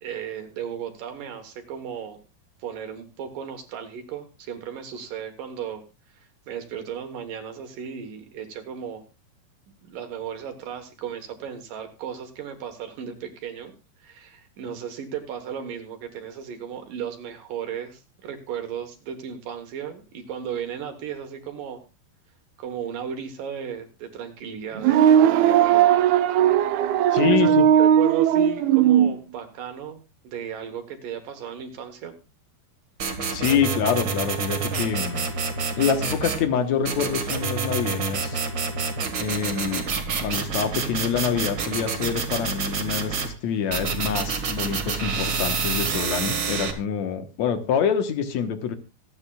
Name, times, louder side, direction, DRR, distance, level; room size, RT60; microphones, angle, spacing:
voice 1, 0.0-2.2 2.6-5.8 6.1-9.0 9.9-13.7 14.0-21.8 22.6-25.9 27.2-32.1, right 8 dB, 70° right, 6 dB, 2.7 m, -35 dB
sound 1, 24.8-29.1, right 10 dB, 85° right, 2.7 m, -18 dB
voice 2, 27.1-27.7 33.3-35.3 35.8-38.4 39.2-39.9 40.2-48.8, left 7 dB, 65° left, 8 dB, 2.0 m, -26 dB
sound 2, 33.0-36.4 36.8-43.3 43.7-46.7, right 5 dB, 45° right, 1.6 m, -28 dB
25.5 x 8.9 x 2.3 m, 0.28 s
omnidirectional pair, 4.3 m